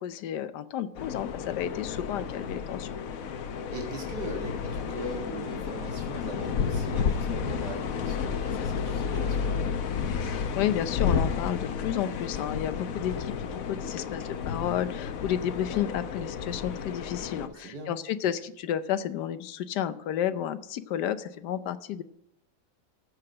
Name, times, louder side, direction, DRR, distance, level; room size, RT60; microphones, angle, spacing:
voice 1, 0.0-3.0 10.2-22.0, left 10 dB, 80° left, 13 dB, 1.3 m, -32 dB
sound 1, 0.9-17.5, left 6 dB, 60° left, 1.1 m, -31 dB
voice 2, 3.7-9.6 17.4-17.9, right 2 dB, 80° right, 1 dB, 2.3 m, -40 dB
13.5 x 4.9 x 7.6 m, 0.77 s
omnidirectional pair, 1.8 m